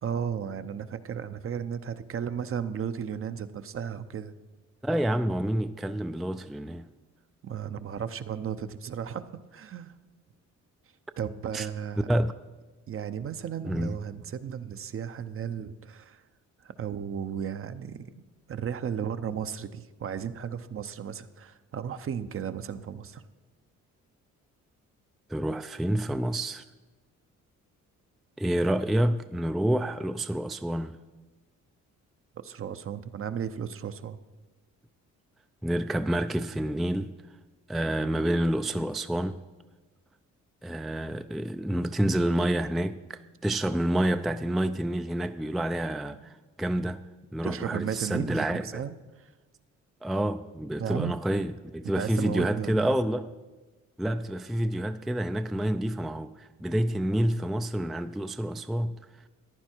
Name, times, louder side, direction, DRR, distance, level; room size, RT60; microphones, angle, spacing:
voice 1, 0.0-4.3 7.4-9.9 11.2-12.1 12.9-16.2 16.6-18.2 18.5-23.2 32.4-34.2 47.4-49.3 50.8-51.1 52.0-52.9, right 8 dB, 45° right, 0.7 m, -34 dB
voice 2, 4.8-6.9 11.5-11.7 12.1-12.3 13.6-14.0 25.3-26.6 28.4-31.0 35.6-37.1 37.7-39.4 40.6-47.0 47.3-48.8 50.0-53.3 54.0-59.0, right 1 dB, ahead, 0.3 m, -28 dB
14.5 x 10.5 x 4.5 m
cardioid pair, 90°, 30 cm